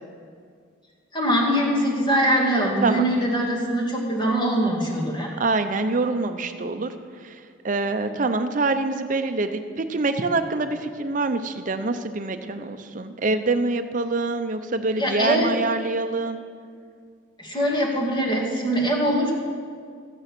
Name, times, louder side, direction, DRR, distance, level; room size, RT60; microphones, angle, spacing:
voice 1, 1.1-5.3 15.0-15.6 17.4-19.3, equal, 25° left, -2 dB, 2.0 m, -22 dB
voice 2, 5.4-6.9 7.2-16.4, right 3 dB, 40° right, 8 dB, 0.6 m, -25 dB
13.5 x 9.5 x 6.0 m, 2.1 s
head